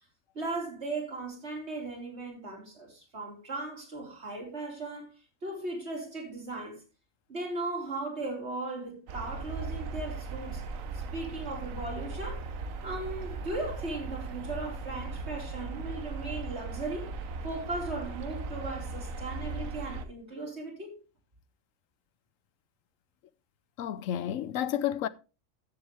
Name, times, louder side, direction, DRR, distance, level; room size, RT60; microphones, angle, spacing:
voice 1, 0.4-5.1 5.4-6.8 7.3-10.6 10.9-12.4 12.8-17.2 17.4-21.0, right 2 dB, 55° right, 3.9 m, -37 dB
sound 1, 9.1-20.0, right 3 dB, 80° right, 1.4 m, -38 dB
voice 2, 23.8-25.1, left 11 dB, 80° left, 1.0 m, -31 dB
13.5 x 7.4 x 3.4 m
omnidirectional pair, 1.4 m